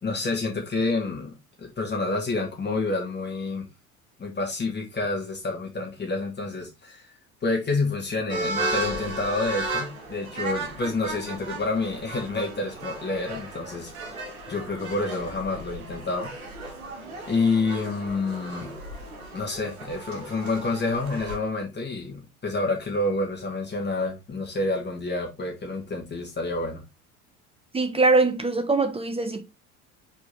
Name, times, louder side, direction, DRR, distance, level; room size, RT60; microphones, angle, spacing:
voice 1, 0.0-3.6 4.2-7.1 7.4-13.9 14.5-16.3 17.3-18.7 19.3-26.8, left 3 dB, 25° left, 2.1 m, -28 dB
sound 1, 8.3-21.4, right 2 dB, 75° right, 2.1 m, -35 dB
voice 2, 27.7-29.4, right 3 dB, 15° right, 0.9 m, -22 dB
5.2 x 4.3 x 4.3 m
figure-of-eight pair, 65°, 42 cm